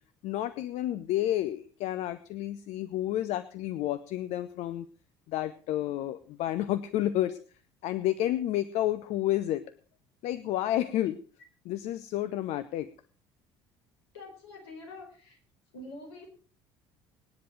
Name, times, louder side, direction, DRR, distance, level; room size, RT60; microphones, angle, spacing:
voice 1, 0.2-4.9 5.3-7.4 7.8-9.6 10.2-11.2 11.6-12.9, left 13 dB, 55° left, 12 dB, 0.8 m, -30 dB
voice 2, 14.1-15.4 15.7-16.3, left 2 dB, 75° left, 3 dB, 5.0 m, -45 dB
19.5 x 10.5 x 4.7 m, 0.40 s
figure-of-eight pair, 60°, 13 cm